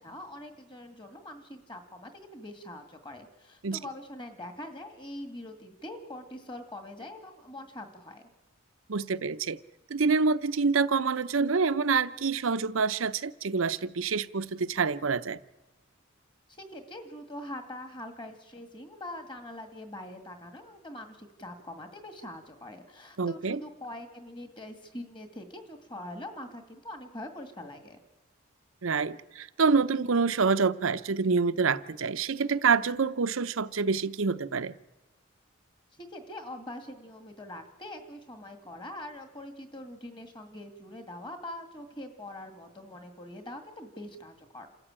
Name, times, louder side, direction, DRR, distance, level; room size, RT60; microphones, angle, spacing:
voice 1, 0.0-8.2 16.6-28.0 36.0-44.7, left 1 dB, 25° left, 6 dB, 2.1 m, -43 dB
voice 2, 8.9-9.6 9.9-15.4 23.2-23.6 28.8-34.7, right 5 dB, 80° right, 13 dB, 0.7 m, -27 dB
27.5 x 13.5 x 8.9 m, 1.1 s
head